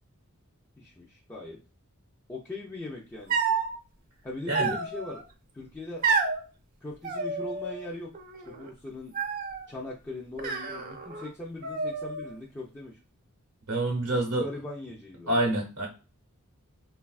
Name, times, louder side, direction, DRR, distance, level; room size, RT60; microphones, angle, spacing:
voice 1, 0.8-1.6 2.3-3.4 4.2-5.2 5.5-6.1 6.8-8.1 8.5-9.1 9.7-13.0 14.1-15.3, left 2 dB, 10° left, -4 dB, 0.4 m, -40 dB
sound 1, 3.3-3.7 4.5-5.2 6.0-6.4 7.0-7.9 8.1-8.7 9.1-9.7 10.4-11.3 11.6-12.4, right 4 dB, 40° right, 0.5 m, -30 dB
voice 2, 13.7-14.5 15.3-15.9, right 1 dB, 75° right, 0 dB, 0.7 m, -27 dB
3.3 x 2.3 x 2.3 m, 0.33 s
head